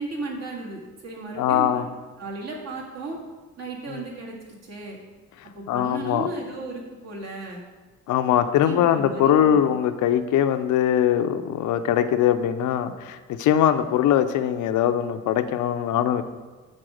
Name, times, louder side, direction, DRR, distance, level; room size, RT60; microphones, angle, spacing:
voice 1, 0.0-1.8 2.2-3.2 3.6-5.0 5.5-7.6 8.3-9.7, right 2 dB, 55° right, -2 dB, 1.8 m, -35 dB
voice 2, 1.4-1.8 3.9-4.0 5.7-6.3 8.1-16.2, left 10 dB, 80° left, 10 dB, 0.5 m, -21 dB
6.4 x 4.1 x 6.2 m, 1.3 s
cardioid pair, 90°, 30 cm